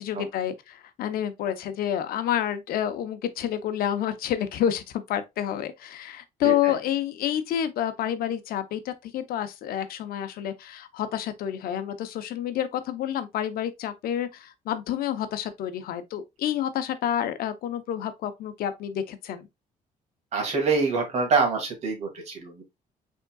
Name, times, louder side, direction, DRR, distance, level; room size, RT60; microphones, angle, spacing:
voice 1, 0.0-19.5, left 10 dB, 75° left, 0.7 m, -29 dB
voice 2, 20.3-22.6, right 4 dB, 45° right, 1.9 m, -26 dB
5.3 x 3.6 x 2.3 m
cardioid pair, 165°, 15 cm